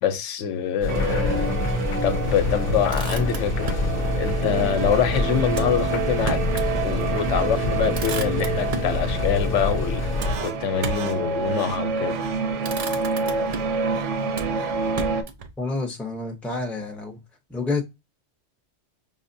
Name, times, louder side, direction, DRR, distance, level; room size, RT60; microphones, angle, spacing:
voice 1, 0.0-1.5 2.0-3.7 4.2-6.4 6.8-10.0 10.4-12.2, left 8 dB, 85° left, 0.9 m, -25 dB
sound 1, 0.8-10.4, left 3 dB, 60° left, 0.7 m, -27 dB
sound 2, 0.9-15.2, right 5 dB, 85° right, 0.9 m, -28 dB
Motor vehicle (road), 2.9-3.9 5.5-6.7 7.1-7.2 7.6-9.0 10.2-11.2 12.0-12.3 12.6-13.8 14.3-15.5, right 4 dB, 70° right, 0.3 m, -34 dB
voice 2, 15.6-17.2 17.5-17.8, left 3 dB, ahead, 0.4 m, -28 dB
5.0 x 2.0 x 2.5 m
omnidirectional pair, 1.2 m